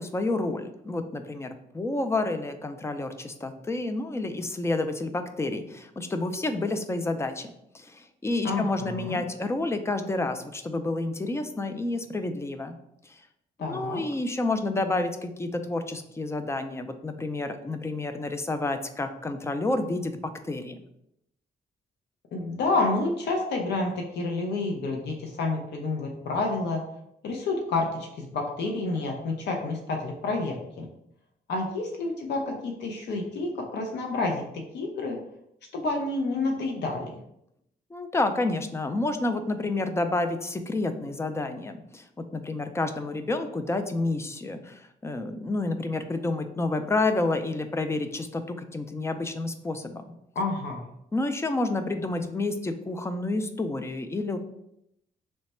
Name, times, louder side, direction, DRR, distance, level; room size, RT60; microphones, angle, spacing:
voice 1, 0.0-12.8 13.1-13.2 13.6-20.2 20.4-20.8 37.9-42.1 42.3-50.0 51.1-54.4, left 2 dB, 15° left, 7 dB, 0.3 m, -29 dB
voice 2, 8.4-9.2 13.6-14.0 22.3-26.8 27.2-30.9 31.5-35.2 35.7-37.1 50.4-50.8, left 3 dB, 85° left, 1 dB, 0.5 m, -29 dB
3.2 x 2.1 x 4.2 m, 0.79 s
cardioid pair, 100°, 17 cm